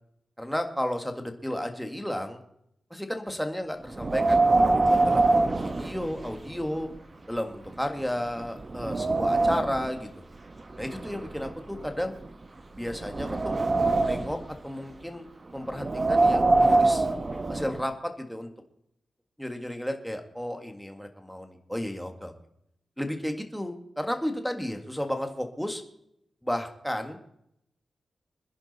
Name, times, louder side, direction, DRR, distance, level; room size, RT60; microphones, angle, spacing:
voice 1, 0.4-2.4 2.9-6.9 7.3-10.1 10.8-12.2 12.8-13.6 14.0-15.3 15.5-17.1 17.5-18.5 19.4-22.3 23.0-25.8 26.4-27.2, equal, ahead, 5 dB, 1.7 m, -33 dB
Wind, 3.9-6.6 6.9-7.0 7.7-7.8 8.3-9.9 10.7-12.3 12.8-14.5 15.7-17.8, right 2 dB, 25° right, 1.0 m, -24 dB
25.5 x 10.5 x 4.2 m, 0.75 s
wide cardioid pair, 155°, 0 cm